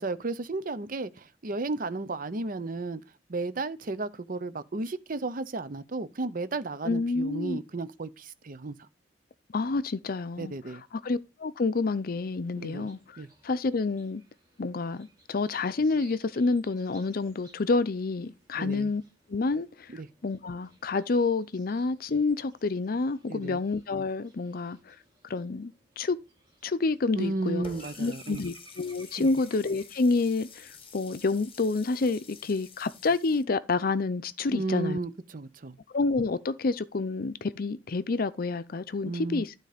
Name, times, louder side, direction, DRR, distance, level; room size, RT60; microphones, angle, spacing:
voice 1, 0.0-3.0 3.3-8.8 10.4-10.8 12.6-12.9 13.2-13.3 18.5-18.9 19.9-20.1 23.3-23.6 27.2-28.4 29.2-29.3 34.5-35.8 39.0-39.4, right 3 dB, 50° right, 0.7 m, -33 dB
voice 2, 6.8-7.6 9.5-10.5 11.0-14.2 14.6-19.0 19.3-19.9 20.2-25.0 25.2-26.2 26.6-27.6 28.0-35.0 35.9-39.5, left 3 dB, 55° left, 0.5 m, -28 dB
sound 1, 12.1-30.8, right 2 dB, 20° right, 5.1 m, -60 dB
Water tap faucet, 27.6-33.4, left 5 dB, 30° left, 1.2 m, -49 dB
12.0 x 3.9 x 5.0 m
head